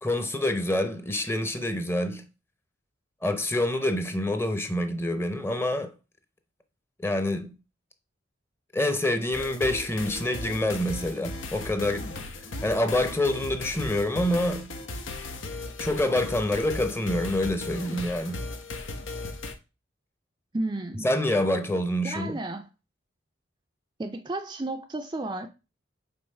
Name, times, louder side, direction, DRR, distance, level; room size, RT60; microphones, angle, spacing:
voice 1, 0.0-2.3 3.2-5.9 7.0-7.5 8.7-12.1 12.6-14.7 15.8-18.4 21.0-22.4, left 1 dB, 15° left, 0.7 m, -27 dB
sound 1, 9.3-19.5, left 2 dB, 90° left, 1.0 m, -37 dB
voice 2, 20.5-21.1 22.0-22.7 24.0-25.5, right 2 dB, 20° right, 0.4 m, -32 dB
5.5 x 3.9 x 5.4 m
head